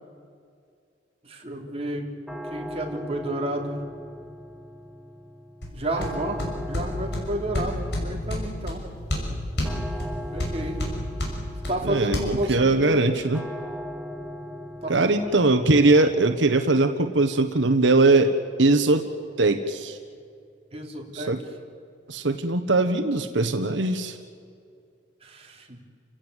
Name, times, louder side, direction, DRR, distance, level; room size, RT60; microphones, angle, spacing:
voice 1, 1.2-2.1 2.4-3.8 5.7-6.4 6.7-8.9 10.3-10.8 11.7-13.0 14.8-15.5 20.7-21.3 25.2-25.8, right 1 dB, 35° right, 1 dB, 3.5 m, -31 dB
sound 1, 2.3-21.2, equal, ahead, 1.9 m, -41 dB
sound 2, 5.6-12.2, left 1 dB, 65° left, 6.3 m, -31 dB
voice 2, 11.8-13.4 14.9-18.3 18.6-19.1 19.4-20.0 21.1-21.4 22.1-24.2, right 2 dB, 90° right, 7 dB, 1.3 m, -21 dB
29.5 x 16.5 x 8.2 m, 2.3 s
head